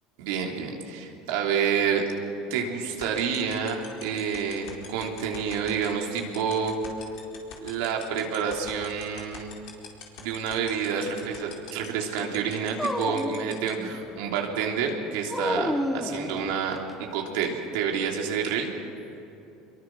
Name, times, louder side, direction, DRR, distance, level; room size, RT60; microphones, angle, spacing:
voice 1, 0.2-2.0 2.5-6.7 7.6-9.5 10.2-16.8 17.1-18.7, right 7 dB, 75° right, 1 dB, 3.3 m, -28 dB
sound 1, 2.8-13.7, left 11 dB, 65° left, 4.3 m, -41 dB
Dog, 12.8-14.2 15.3-16.9, left 1 dB, 5° left, 1.3 m, -30 dB
25.0 x 22.0 x 6.2 m, 2.9 s
supercardioid pair, 95°, 0 cm